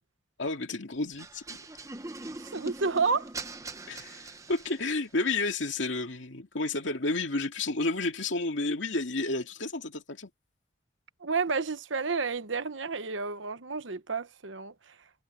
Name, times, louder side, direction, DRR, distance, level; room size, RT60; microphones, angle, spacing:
voice 1, 0.4-1.6 3.9-10.3, left 2 dB, 75° left, 2.3 m, -31 dB
sound 1, 1.2-5.1, right 2 dB, 15° right, 0.8 m, -42 dB
voice 2, 2.4-3.3 3.9-4.2 11.2-14.7, right 4 dB, 75° right, 1.1 m, -30 dB
head